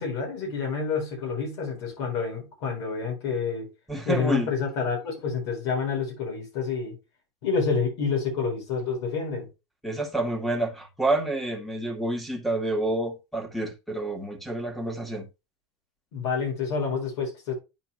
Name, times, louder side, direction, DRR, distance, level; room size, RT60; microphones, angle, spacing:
voice 1, 0.0-3.7 4.1-6.9 7.4-9.5 16.1-17.5, left 5 dB, 70° left, 4.2 m, -28 dB
voice 2, 3.9-4.5 9.8-15.3, right 2 dB, ahead, 2.1 m, -28 dB
9.6 x 4.1 x 3.3 m
hypercardioid pair, 90°, 15 cm